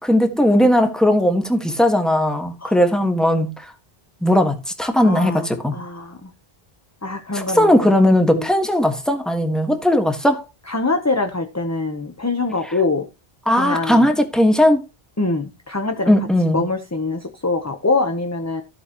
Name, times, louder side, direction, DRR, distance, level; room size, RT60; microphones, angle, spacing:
voice 1, 0.0-3.5 4.2-5.7 7.3-10.4 13.5-14.8 16.1-16.6, left 1 dB, ahead, 1.5 m, -17 dB
voice 2, 5.0-6.3 7.0-7.9 8.3-8.5 10.7-13.1 13.5-14.1 15.2-16.1 16.5-18.6, left 3 dB, 15° left, 0.9 m, -24 dB
14.0 x 7.9 x 3.0 m
omnidirectional pair, 1.0 m